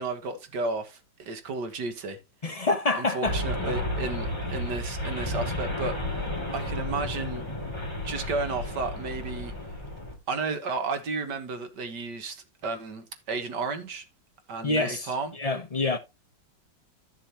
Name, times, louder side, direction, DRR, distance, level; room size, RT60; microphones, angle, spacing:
voice 1, 0.0-2.2 3.0-6.0 6.5-7.4 8.0-9.5 10.3-14.0 14.5-15.4, right 3 dB, 65° right, 1.9 m, -33 dB
voice 2, 2.4-3.4 14.6-15.1 15.3-16.0, left 3 dB, 50° left, 0.4 m, -26 dB
sound 1, 3.2-10.1, left 1 dB, 15° left, 2.5 m, -32 dB
13.0 x 6.9 x 2.9 m
omnidirectional pair, 2.0 m